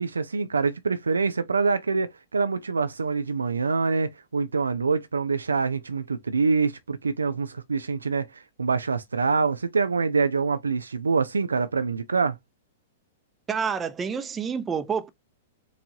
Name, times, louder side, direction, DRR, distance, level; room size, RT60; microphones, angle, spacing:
voice 1, 0.0-12.4, right 4 dB, 90° right, 0.4 m, -25 dB
voice 2, 13.5-15.1, right 6 dB, 20° right, 0.5 m, -28 dB
4.6 x 2.5 x 2.7 m
hypercardioid pair, 110°, 0 cm